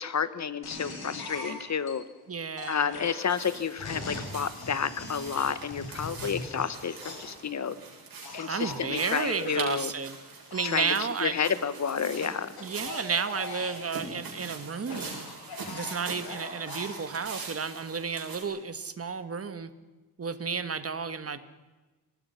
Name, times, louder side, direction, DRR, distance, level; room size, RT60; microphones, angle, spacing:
voice 1, 0.0-2.0 2.7-7.8 8.3-9.9 10.6-10.9 11.2-12.5, left 7 dB, 45° left, 14 dB, 1.2 m, -30 dB
sound 1, 0.6-1.9 2.6-7.4 8.2-9.6 10.5-10.9 12.1-13.9 14.7-16.9, left 2 dB, 70° left, 7.7 m, -41 dB
voice 2, 2.3-3.0 8.5-10.2 10.5-11.3 12.6-15.3 15.7-19.7 20.2-21.4, right 5 dB, 35° right, 11 dB, 1.5 m, -32 dB
sound 2, 3.1-18.4, right 4 dB, 60° right, 7.3 m, -43 dB
25.0 x 19.5 x 5.7 m, 1.2 s
wide cardioid pair, 125°, 39 cm